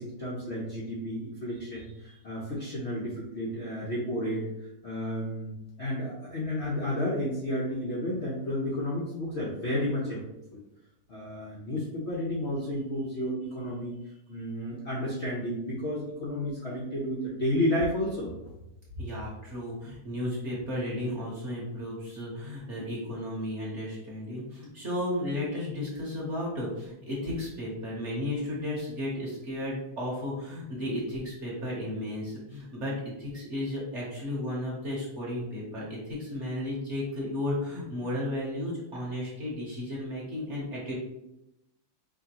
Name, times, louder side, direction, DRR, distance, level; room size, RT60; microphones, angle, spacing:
voice 1, 0.0-5.5 5.8-10.2 10.5-10.6 11.1-13.9 14.3-18.3, left 1 dB, 85° left, -5 dB, 0.6 m, -32 dB
voice 2, 19.0-40.9, left 1 dB, 45° right, -5 dB, 1.0 m, -34 dB
5.0 x 2.8 x 2.9 m, 0.88 s
omnidirectional pair, 2.3 m